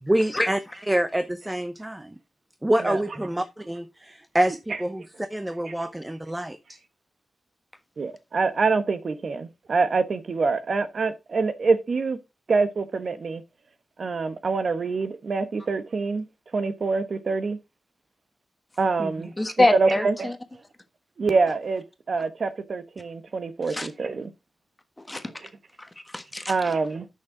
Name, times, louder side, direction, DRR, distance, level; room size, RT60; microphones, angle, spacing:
voice 1, 0.0-0.6 0.9-2.2 2.6-6.8 19.0-19.3, right 1 dB, 10° right, 0.7 m, -26 dB
voice 2, 8.0-12.2 12.5-13.4 14.0-16.2 16.5-17.6 18.8-19.3 19.6-20.3 21.2-24.3 26.5-27.1, right 4 dB, 60° right, 1.0 m, -25 dB
voice 3, 19.4-20.4 23.7-23.9 25.0-25.3 25.8-26.7, left 2 dB, 15° left, 1.4 m, -25 dB
9.4 x 6.6 x 3.8 m
wide cardioid pair, 120°, 0 cm